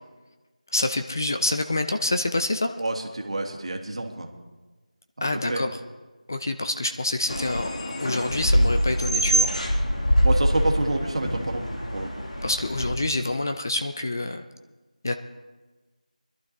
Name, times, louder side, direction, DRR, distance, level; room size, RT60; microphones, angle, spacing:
voice 1, 0.7-2.8 5.2-5.8 6.3-7.7 8.0-9.5 12.4-14.4 15.0-15.1, left 2 dB, 25° left, 7 dB, 0.4 m, -27 dB
voice 2, 2.8-4.3 5.2-5.6 10.2-12.1, right 2 dB, 45° right, 3 dB, 1.7 m, -28 dB
sound 1, 7.3-12.9, equal, 60° left, 1.9 m, -24 dB
24.0 x 12.0 x 2.7 m, 1.2 s
figure-of-eight pair, 175°, 4 cm